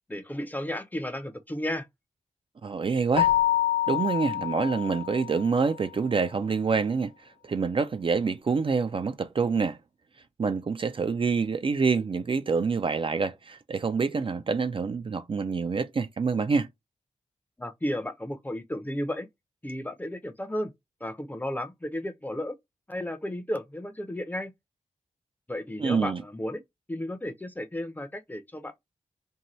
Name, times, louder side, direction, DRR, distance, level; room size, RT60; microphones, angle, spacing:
voice 1, 0.1-1.9 17.6-19.3 19.6-20.7 21.0-22.5 22.9-24.5 25.5-26.6 26.9-28.8, left 1 dB, 15° left, 0.6 m, -33 dB
voice 2, 2.6-3.3 3.9-7.1 7.4-9.8 10.4-16.7 25.8-26.2, right 5 dB, 40° right, 0.4 m, -26 dB
Keyboard (musical), 3.2-5.6, left 12 dB, 60° left, 0.4 m, -26 dB
2.7 x 2.2 x 2.9 m
cardioid pair, 65°, 13 cm